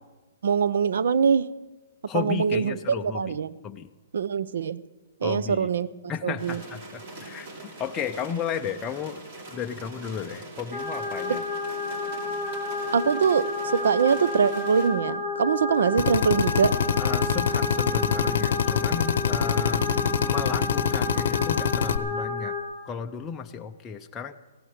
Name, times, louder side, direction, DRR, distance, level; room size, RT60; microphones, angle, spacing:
voice 1, 0.4-1.5 2.1-3.6 4.1-4.8 5.2-5.9 6.2-6.6 11.3-11.4 12.9-16.8, right 6 dB, 70° right, 17 dB, 0.6 m, -23 dB
voice 2, 2.1-3.4 3.6-3.9 5.2-5.7 6.1-7.5 7.8-11.4 17.0-19.8 20.2-22.5 22.9-24.4, left 7 dB, 15° left, 4 dB, 0.4 m, -34 dB
sound 1, 6.4-14.9, right 2 dB, 40° right, 2.9 m, -43 dB
sound 2, 10.7-22.6, left 2 dB, 15° right, 2.1 m, -31 dB
Drill, 16.0-22.0, left 8 dB, 65° left, 0.7 m, -25 dB
16.0 x 11.0 x 6.5 m, 1.2 s
hypercardioid pair, 170°, 0 cm